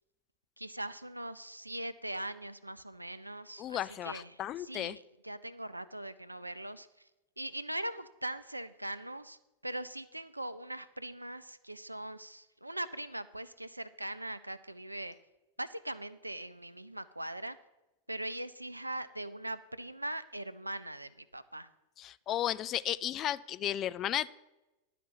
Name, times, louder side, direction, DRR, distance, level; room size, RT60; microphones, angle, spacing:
voice 1, 0.6-6.9 7.4-15.2 15.6-17.6 18.1-21.7, right 1 dB, 85° right, 13 dB, 0.4 m, -41 dB
voice 2, 3.6-5.0 22.0-24.3, left 11 dB, 30° left, 17 dB, 0.3 m, -34 dB
11.0 x 5.1 x 7.6 m, 0.99 s
figure-of-eight pair, 90°, 0 cm